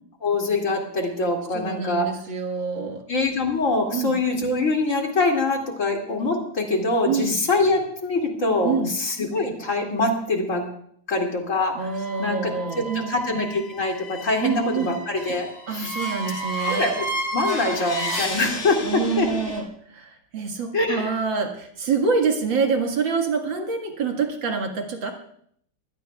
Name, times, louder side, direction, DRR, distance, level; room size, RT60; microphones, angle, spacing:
voice 1, 0.2-2.1 3.1-10.7 11.1-11.8 12.2-15.5 15.7-16.0 16.6-17.0 17.3-19.3 20.7-21.1, left 2 dB, 40° left, 1 dB, 2.8 m, -24 dB
voice 2, 1.5-3.0 3.9-4.1 7.0-7.4 8.6-8.9 11.7-13.1 14.4-15.0 15.7-16.9 18.8-25.1, right 5 dB, 65° right, 3 dB, 2.5 m, -26 dB
sound 1, 11.9-19.6, equal, 70° left, 2.9 m, -32 dB
23.5 x 17.0 x 2.4 m, 0.64 s
omnidirectional pair, 2.3 m